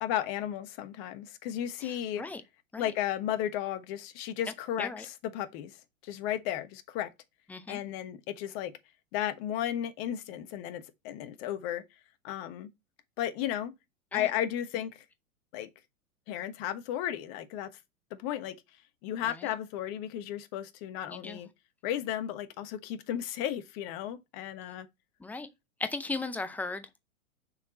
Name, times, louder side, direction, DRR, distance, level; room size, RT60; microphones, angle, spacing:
voice 1, 0.0-2.2 2.8-5.8 6.0-7.1 7.7-8.7 9.1-11.8 12.2-12.7 13.2-13.7 14.1-15.0 15.5-15.7 16.3-17.7 18.2-18.6 19.0-21.5 21.8-24.9, left 11 dB, 40° left, 1.3 m, -34 dB
voice 2, 1.8-2.4 2.7-2.8 4.8-5.1 7.5-7.8 14.1-14.3 19.2-19.5 21.1-21.4 25.2-25.5 25.8-27.0, left 3 dB, 5° left, 0.6 m, -37 dB
7.1 x 4.5 x 4.2 m
hypercardioid pair, 110°, 41 cm